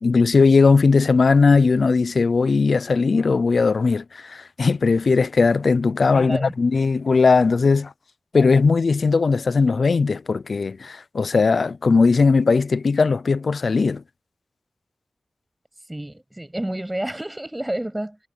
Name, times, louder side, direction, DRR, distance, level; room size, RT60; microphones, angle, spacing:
voice 1, 0.0-7.9 8.3-14.0, left 4 dB, 65° left, 0.5 m, -18 dB
voice 2, 6.1-6.5 15.9-18.2, right 1 dB, 15° right, 7.3 m, -29 dB
wide cardioid pair, 90°, 0 cm